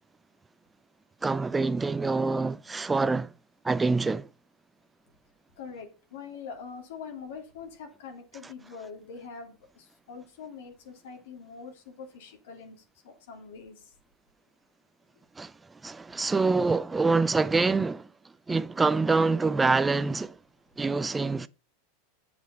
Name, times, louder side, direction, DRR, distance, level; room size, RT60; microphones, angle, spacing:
voice 1, 1.2-3.3 3.6-4.3 15.4-15.5 15.8-18.1 18.5-20.4 20.8-21.5, right 3 dB, 15° right, 0.4 m, -25 dB
voice 2, 5.6-13.9, left 5 dB, 75° left, 3.1 m, -44 dB
8.0 x 7.1 x 5.9 m
hypercardioid pair, 105°, 0 cm